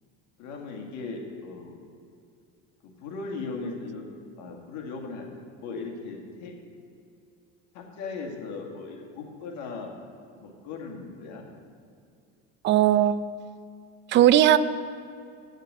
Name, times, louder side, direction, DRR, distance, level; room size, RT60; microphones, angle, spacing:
voice 1, 0.4-1.7 2.8-4.0 4.4-5.2 5.6-6.5 7.7-9.9 10.4-11.4, left 4 dB, 60° left, 1 dB, 2.0 m, -37 dB
voice 2, 12.6-13.2 14.1-14.6, right 12 dB, 35° right, 14 dB, 0.4 m, -18 dB
8.7 x 6.6 x 7.8 m, 2.4 s
supercardioid pair, 95°, 33 cm